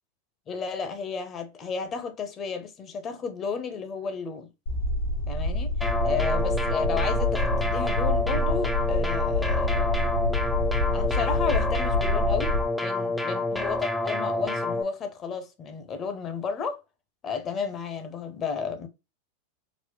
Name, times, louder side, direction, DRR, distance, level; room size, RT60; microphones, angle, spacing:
voice 1, 0.5-4.5 5.3-10.1 10.9-16.8 17.2-18.9, left 5 dB, 35° left, 0.8 m, -33 dB
sound 1, 4.7-12.7, left 1 dB, 85° left, 1.6 m, -27 dB
sound 2, 5.8-14.8, left 2 dB, 5° left, 0.4 m, -28 dB
4.1 x 2.1 x 3.0 m
hypercardioid pair, 110°, 0 cm